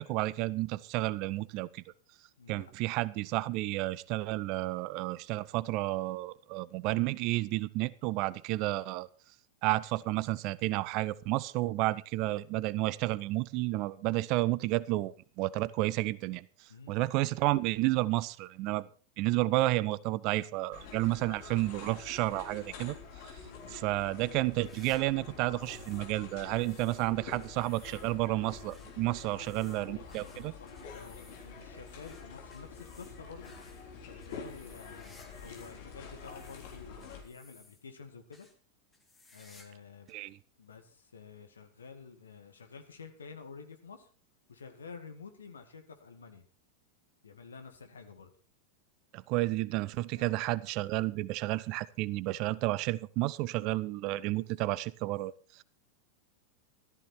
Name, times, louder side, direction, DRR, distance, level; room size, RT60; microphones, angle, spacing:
voice 1, 0.0-1.8 2.5-9.1 9.6-16.4 16.9-18.9 19.2-23.0 23.7-30.5 40.1-40.4 49.1-55.3, right 18 dB, 40° right, 0.6 m, -31 dB
voice 2, 2.4-2.7 16.7-17.0 23.4-23.6 29.3-33.5 34.0-38.5 39.3-40.1 40.6-44.1 44.5-46.4 47.2-48.3 50.2-50.3, left 5 dB, 70° left, 2.1 m, -50 dB
sound 1, 20.7-37.2, left 5 dB, 50° left, 3.6 m, -47 dB
sound 2, 24.4-26.1 26.4-35.8 36.1-38.0 38.3-38.6 38.9-39.8 40.1-40.2 41.0-41.1 42.3-42.4, left 2 dB, 10° left, 2.5 m, -61 dB
14.5 x 13.0 x 4.4 m
figure-of-eight pair, 90°, 0 cm